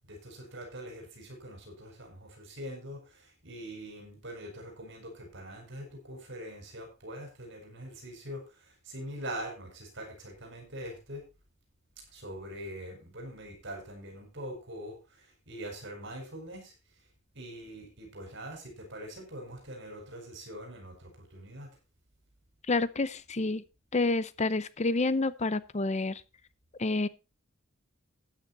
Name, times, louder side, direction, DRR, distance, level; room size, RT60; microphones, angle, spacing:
voice 1, 0.1-8.4 8.8-11.2 12.1-15.0 15.5-16.7 17.3-21.7, right 1 dB, 60° right, 5.2 m, -43 dB
voice 2, 22.7-23.6 23.9-26.2 26.8-27.1, left 3 dB, 35° left, 0.7 m, -28 dB
13.0 x 9.6 x 4.1 m
head